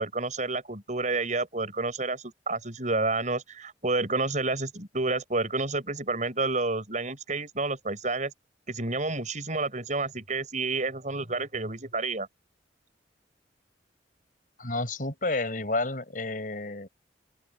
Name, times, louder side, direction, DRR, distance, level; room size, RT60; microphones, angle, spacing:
voice 1, 0.0-8.3 8.7-12.3, right 3 dB, 45° right, 6.7 m, -29 dB
voice 2, 14.6-16.9, left 2 dB, 50° left, 5.6 m, -30 dB
open air
head